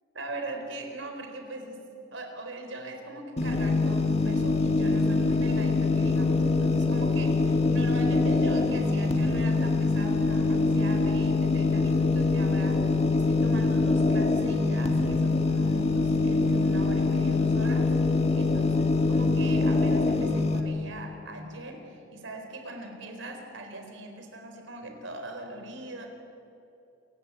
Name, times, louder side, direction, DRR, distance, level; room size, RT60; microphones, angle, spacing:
voice 1, 0.1-18.7 19.1-26.1, right 2 dB, 80° right, 4 dB, 4.3 m, -41 dB
sound 1, 3.4-20.6, left 3 dB, 35° left, 1.9 m, -24 dB
28.0 x 16.5 x 8.5 m, 2.8 s
head